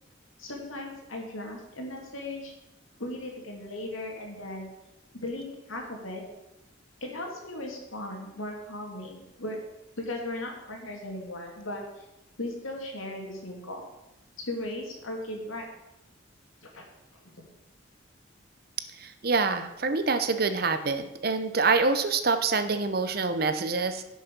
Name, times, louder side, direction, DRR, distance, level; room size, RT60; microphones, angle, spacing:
voice 1, 0.4-2.5 3.0-4.7 5.1-6.2 7.0-9.6 10.0-12.0 12.4-13.9 14.5-15.7 16.6-16.9, left 1 dB, 85° left, 1 dB, 2.5 m, -37 dB
voice 2, 19.0-24.0, right 4 dB, 45° right, 10 dB, 0.8 m, -26 dB
11.5 x 6.4 x 5.4 m, 0.93 s
head